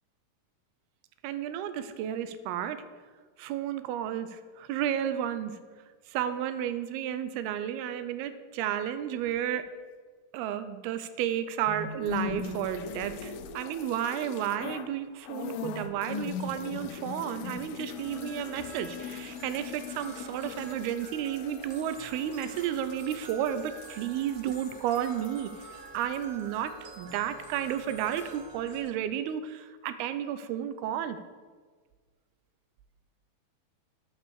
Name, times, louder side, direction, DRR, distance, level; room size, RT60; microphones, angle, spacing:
voice 1, 1.2-2.8 3.4-5.5 6.1-9.7 10.3-25.5 25.9-31.2, right 10 dB, 85° right, 12 dB, 2.5 m, -32 dB
sound 1, 11.7-14.2 15.6-18.1, left 5 dB, 65° left, 1.3 m, -38 dB
sound 2, 12.0-14.9 15.2-27.1 27.4-28.4, left 9 dB, 85° left, 2.6 m, -45 dB
sound 3, 17.9-28.8, right 4 dB, 65° right, 1.5 m, -48 dB
8.3 x 5.4 x 7.1 m, 1.5 s
omnidirectional pair, 4.5 m